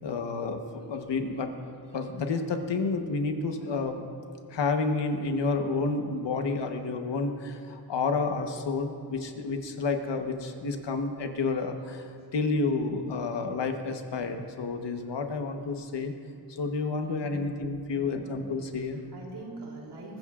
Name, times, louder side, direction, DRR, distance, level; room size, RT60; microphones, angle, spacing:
voice 1, 0.0-1.5 1.9-4.0 4.5-16.1 16.5-19.0, left 4 dB, 75° left, 5 dB, 1.2 m, -30 dB
voice 2, 17.2-17.6 17.9-18.6 19.1-20.2, right 2 dB, 70° right, -2 dB, 3.3 m, -43 dB
22.5 x 14.5 x 2.5 m, 2.4 s
wide cardioid pair, 160°, 43 cm